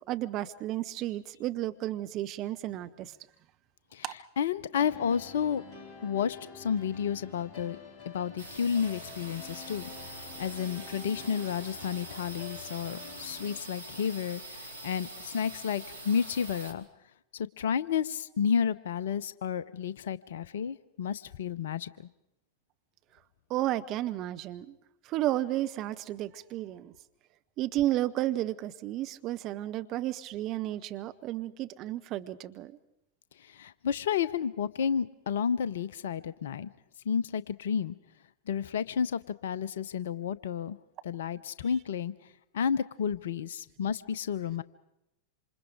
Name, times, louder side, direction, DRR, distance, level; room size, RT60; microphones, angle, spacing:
voice 1, 0.1-3.2 4.0-4.1 23.5-24.7 25.0-26.9 27.6-32.8, right 14 dB, 35° right, 11 dB, 0.9 m, -32 dB
voice 2, 4.4-5.6 6.0-7.8 8.1-16.8 17.3-22.1 33.4-36.7 37.0-38.0 38.5-40.8 41.0-42.1 42.5-44.6, left 7 dB, 60° left, 17 dB, 0.7 m, -31 dB
sound 1, 4.7-13.6, left 4 dB, 30° left, 5.1 m, -48 dB
sound 2, 8.4-16.7, right 1 dB, 80° right, 2.2 m, -44 dB
27.0 x 26.5 x 4.9 m, 0.84 s
figure-of-eight pair, 90°, 0 cm